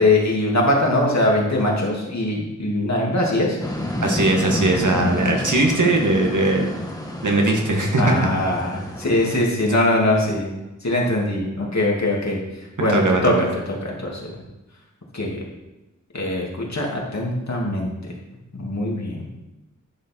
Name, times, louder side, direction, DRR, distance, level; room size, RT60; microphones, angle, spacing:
voice 1, 0.0-3.6 8.0-10.5 10.8-12.4 12.8-14.3 15.1-15.4 16.1-18.1 18.5-19.2, left 1 dB, 60° left, -2 dB, 2.6 m, -22 dB
sound 1, 3.6-9.4, left 1 dB, 10° left, 1.4 m, -29 dB
voice 2, 4.0-6.7 7.2-8.1 12.9-13.4, right 2 dB, 75° right, 1 dB, 1.9 m, -19 dB
11.0 x 6.3 x 4.6 m, 0.98 s
wide cardioid pair, 75°, 31 cm